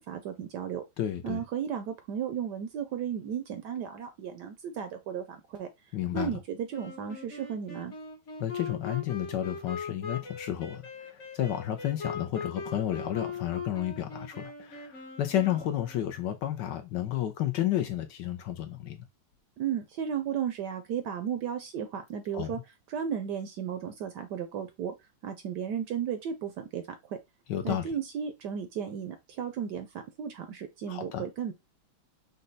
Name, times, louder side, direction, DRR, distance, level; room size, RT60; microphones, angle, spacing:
voice 1, 0.0-0.8 1.2-5.7 6.1-7.9 19.6-22.6 22.9-24.9 25.2-26.8 27.1-27.2 27.6-29.9 30.2-31.5, right 8 dB, 70° right, 1.0 m, -34 dB
voice 2, 1.0-1.4 5.9-6.4 8.4-19.0 22.3-22.6 27.5-27.9 30.9-31.3, left 11 dB, 70° left, 1.1 m, -32 dB
Wind instrument woodwind instrument, 6.7-16.2, left 5 dB, 45° left, 1.1 m, -40 dB
5.3 x 2.2 x 3.9 m
omnidirectional pair, 2.2 m